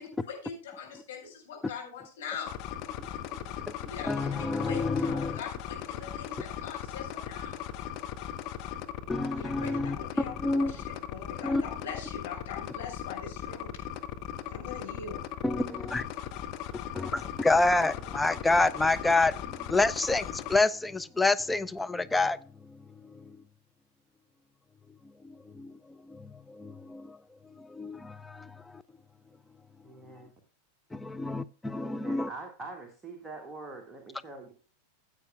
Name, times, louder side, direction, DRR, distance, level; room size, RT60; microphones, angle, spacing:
voice 1, 0.0-2.5 3.9-7.6 9.3-13.8 14.5-15.2, left 6 dB, 60° left, 5.0 m, -42 dB
sound 1, 2.5-20.6, left 10 dB, 40° left, 1.0 m, -38 dB
voice 2, 4.1-5.4 9.1-10.7 11.4-11.6 15.4-16.1 16.9-19.3 19.6-22.4 25.2-25.7 26.1-26.3 26.6-27.2 27.6-28.5 30.9-32.3, left 2 dB, 10° left, 0.5 m, -28 dB
voice 3, 29.8-30.3 31.8-34.5, right 3 dB, 15° right, 1.7 m, -44 dB
15.5 x 8.3 x 2.3 m
figure-of-eight pair, 90°, 0 cm